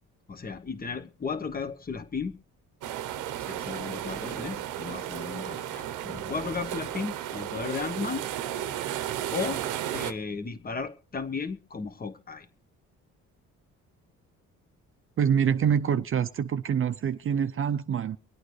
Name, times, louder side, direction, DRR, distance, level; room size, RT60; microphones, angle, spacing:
voice 1, 0.3-2.4 3.4-8.2 9.3-9.6 9.9-12.5, left 5 dB, 30° left, 1.2 m, -35 dB
Mar desde la escollera de costado +lowshelf, 2.8-10.1, right 11 dB, 90° right, 0.8 m, -34 dB
voice 2, 15.2-18.2, right 8 dB, 45° right, 0.6 m, -25 dB
25.0 x 8.8 x 3.2 m
cardioid pair, 90°, 30 cm